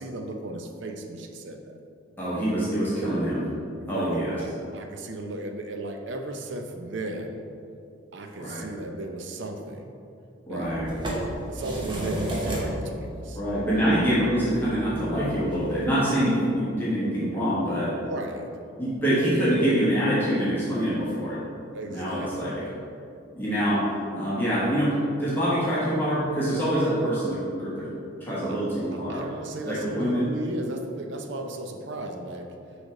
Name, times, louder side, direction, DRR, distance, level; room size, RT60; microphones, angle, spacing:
voice 1, 0.0-1.8 3.8-7.4 8.1-9.9 10.5-13.4 13.7-13.9 18.0-18.6 21.7-22.5 28.9-32.5, right 2 dB, 65° right, 4 dB, 0.6 m, -36 dB
voice 2, 2.2-3.4 3.9-4.4 8.4-8.6 10.5-10.9 13.3-17.9 18.8-21.4 21.9-22.7 23.3-23.8 24.2-27.9 28.2-29.2 29.7-30.3, equal, 10° left, -11 dB, 1.4 m, -25 dB
sound 1, 10.6-15.8, right 1 dB, 25° right, 0.9 m, -33 dB
6.2 x 3.4 x 5.1 m, 2.6 s
head